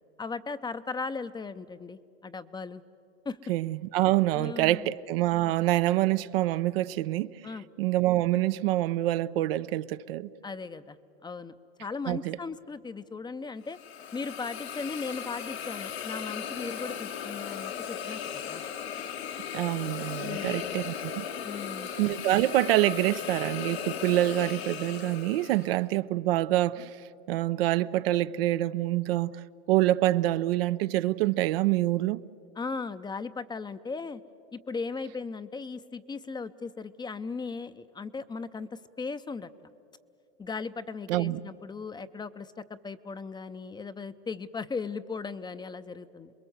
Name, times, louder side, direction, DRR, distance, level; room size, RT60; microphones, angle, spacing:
voice 1, 0.2-2.8 3.2-3.4 4.3-4.9 7.4-7.7 10.4-11.0 11.2-11.5 11.8-13.8 14.1-18.6 20.2-20.9 21.4-21.9 32.6-34.2 34.5-39.5 40.4-46.3, left 4 dB, 15° left, 0.6 m, -37 dB
voice 2, 3.5-7.3 7.8-10.3 12.1-12.4 19.5-21.2 22.0-26.9 27.3-29.3 29.7-32.2 41.1-41.4, right 15 dB, 70° right, 0.6 m, -26 dB
Hiss, 13.7-25.8, left 8 dB, 85° left, 2.1 m, -37 dB
28.0 x 21.5 x 8.0 m
hypercardioid pair, 105°, 31 cm